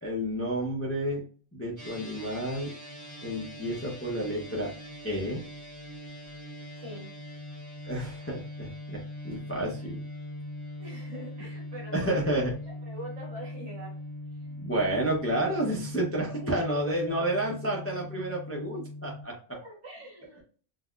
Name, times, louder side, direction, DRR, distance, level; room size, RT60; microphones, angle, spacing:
voice 1, 0.0-1.2 1.5-2.7 3.2-4.7 5.0-5.4 7.8-10.0 11.9-12.5 14.5-19.3, right 1 dB, 15° left, -2 dB, 0.5 m, -30 dB
sound 1, 1.8-19.2, left 1 dB, 20° right, 0.8 m, -41 dB
voice 2, 6.7-7.1 10.8-13.9 16.3-17.1 19.5-20.4, equal, 70° right, -3 dB, 1.8 m, -44 dB
3.9 x 2.1 x 2.3 m, 0.41 s
omnidirectional pair, 1.3 m